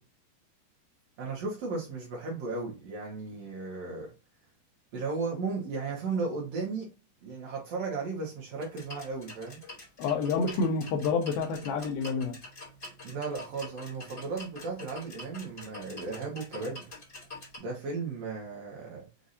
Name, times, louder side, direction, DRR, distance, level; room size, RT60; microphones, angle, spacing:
voice 1, 1.2-4.1 4.9-6.9 7.2-9.6 13.0-16.8 17.6-19.1, right 4 dB, 80° right, 1.4 m, -35 dB
sound 1, 8.6-17.6, left 2 dB, 25° left, 1.6 m, -46 dB
voice 2, 10.0-12.4, left 4 dB, 75° left, 2.3 m, -28 dB
6.9 x 2.6 x 2.7 m
omnidirectional pair, 4.8 m